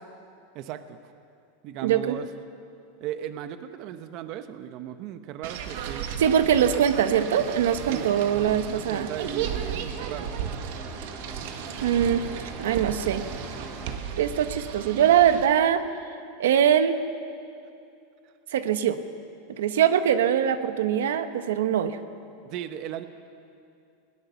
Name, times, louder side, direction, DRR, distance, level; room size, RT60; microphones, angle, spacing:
voice 1, 0.5-1.0 1.6-2.3 3.0-6.1 6.6-6.9 7.9-8.1 8.6-10.3 22.4-23.0, right 11 dB, 40° right, 10 dB, 0.8 m, -37 dB
voice 2, 1.8-2.2 6.2-9.1 11.8-12.3 12.6-13.2 14.2-15.8 16.4-17.0 18.5-19.0 19.6-22.0, right 9 dB, 90° right, 10 dB, 1.1 m, -22 dB
sound 1, 5.4-15.5, right 8 dB, 60° right, 1.6 m, -35 dB
sound 2, 7.7-14.0, right 2 dB, 15° right, 2.7 m, -43 dB
20.5 x 18.0 x 7.0 m, 2.5 s
supercardioid pair, 160°, 0 cm